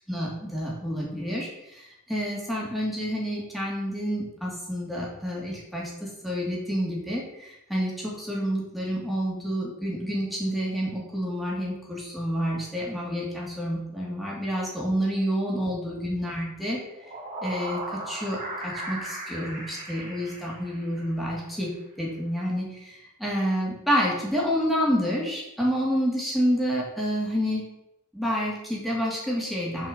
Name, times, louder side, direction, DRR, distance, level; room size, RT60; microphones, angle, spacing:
voice 1, 0.1-16.8 17.4-21.7 22.0-27.7 28.1-29.9, equal, ahead, -5 dB, 2.7 m, -29 dB
sound 1, 16.8-21.2, right 2 dB, 35° right, 3.3 m, -37 dB
7.5 x 5.4 x 6.8 m, 0.86 s
head